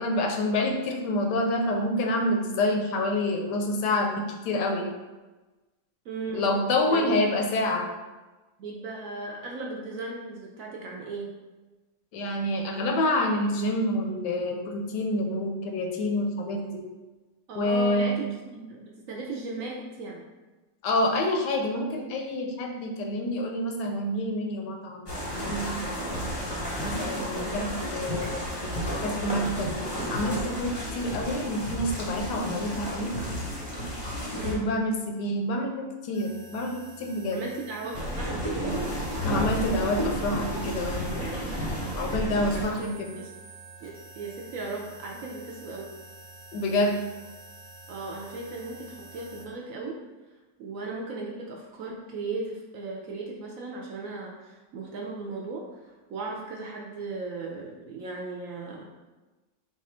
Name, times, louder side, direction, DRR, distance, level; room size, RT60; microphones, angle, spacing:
voice 1, 0.0-4.9 6.3-7.9 12.1-16.9 17.6-18.2 20.8-26.0 26.8-28.7 29.0-29.8 30.1-33.1 34.4-37.4 39.2-41.1 41.9-43.1 46.5-47.0, left 1 dB, 75° left, 2 dB, 1.1 m, -28 dB
voice 2, 6.1-6.5 6.8-7.2 8.6-11.3 17.5-20.2 34.3-34.7 37.3-38.7 42.5-43.0 43.8-45.9 47.9-50.0 50.6-58.9, right 3 dB, 75° right, -1 dB, 0.7 m, -37 dB
sound 1, 25.1-34.5 37.9-42.6, equal, 25° left, 0.5 m, -32 dB
sound 2, 36.1-49.5, right 2 dB, 45° right, 1.0 m, -48 dB
4.2 x 2.4 x 4.2 m, 1.2 s
omnidirectional pair, 2.0 m